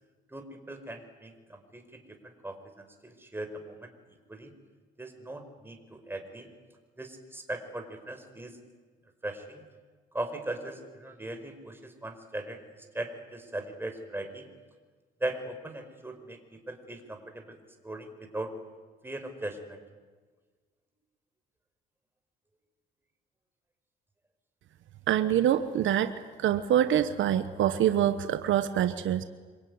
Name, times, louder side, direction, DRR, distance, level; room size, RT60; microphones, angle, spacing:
voice 1, 0.3-3.9 4.3-4.5 5.0-6.5 7.0-8.6 9.2-9.6 10.1-12.6 12.9-14.4 15.2-17.5 17.8-18.5 19.0-19.8, right 1 dB, 10° right, 5 dB, 5.0 m, -39 dB
voice 2, 25.1-26.1 26.4-29.2, right 10 dB, 75° right, 10 dB, 1.2 m, -25 dB
26.5 x 23.0 x 9.7 m, 1.4 s
cardioid pair, 90°, 20 cm